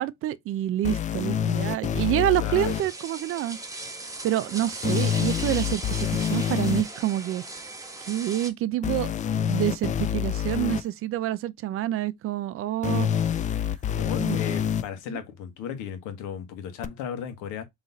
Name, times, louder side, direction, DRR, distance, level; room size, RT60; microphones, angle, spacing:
voice 1, 0.0-3.6 4.2-7.4 8.0-9.1 9.5-13.1 14.2-14.4 15.1-15.2, right 13 dB, 40° right, 0.6 m, -27 dB
sound 1, 0.8-2.8 4.8-6.8 8.8-10.8 12.8-14.8 16.8-16.9, left 8 dB, 25° left, 0.4 m, -26 dB
voice 2, 2.2-2.7 13.9-17.6, left 8 dB, 65° left, 1.5 m, -35 dB
sound 2, 2.6-8.5, right 2 dB, 10° right, 1.1 m, -38 dB
3.8 x 3.1 x 4.0 m
supercardioid pair, 95°, 33 cm